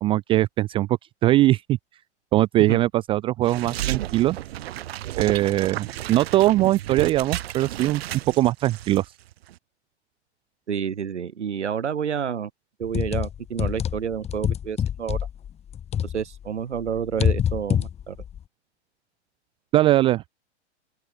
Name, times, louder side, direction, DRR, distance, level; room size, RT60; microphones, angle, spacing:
voice 1, 0.0-0.9 1.2-1.8 2.3-4.4 5.2-8.0 8.4-9.0 19.7-20.3, right 15 dB, 15° right, 0.4 m, -21 dB
sound 1, 3.4-9.0 9.3-9.5, right 14 dB, 60° right, 4.0 m, -32 dB
voice 2, 10.7-12.5 12.8-15.2 16.0-18.2, right 7 dB, 85° right, 4.5 m, -29 dB
sound 2, 12.8-16.5 16.7-18.4, left 9 dB, 20° left, 1.5 m, -26 dB
open air
hypercardioid pair, 125°, 34 cm